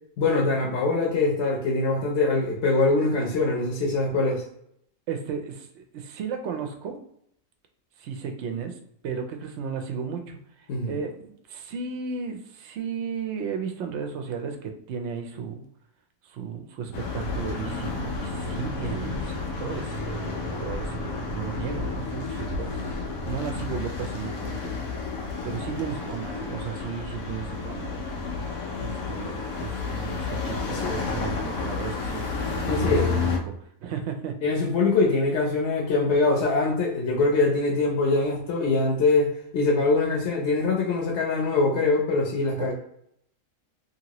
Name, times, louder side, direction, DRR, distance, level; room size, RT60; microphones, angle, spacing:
voice 1, 0.2-4.4 10.7-10.9 30.8-31.0 32.7-33.2 34.4-42.7, left 3 dB, 60° left, -1 dB, 0.9 m, -23 dB
voice 2, 5.1-7.0 8.0-15.6 16.2-22.7 23.2-24.7 25.4-28.0 28.8-32.2 32.6-33.5 33.8-34.4 42.6-42.7, right 6 dB, 65° right, 5 dB, 0.8 m, -34 dB
sound 1, 16.9-33.4, left 4 dB, 85° left, 1.1 m, -31 dB
2.8 x 2.7 x 2.9 m, 0.70 s
omnidirectional pair, 1.4 m